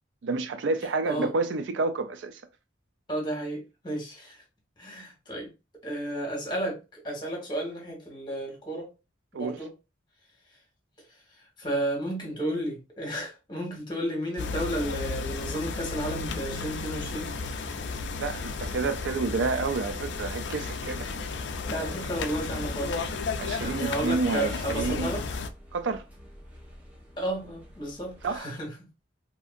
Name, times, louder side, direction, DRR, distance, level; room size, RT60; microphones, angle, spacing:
voice 1, 0.2-2.4 9.3-9.6 18.2-21.1 23.4-25.1 25.7-26.0 28.2-28.4, right 3 dB, 75° right, 0.4 m, -29 dB
voice 2, 3.1-4.4 4.8-5.5 5.8-8.9 9.3-9.7 11.6-17.3 21.1-21.2 21.6-23.0 23.6-25.2 27.2-28.7, right 1 dB, 25° left, 1.1 m, -32 dB
sound 1, 14.4-25.5, left 4 dB, 65° left, 0.3 m, -33 dB
sound 2, 14.8-28.4, equal, 10° right, 0.8 m, -47 dB
2.7 x 2.5 x 2.4 m
head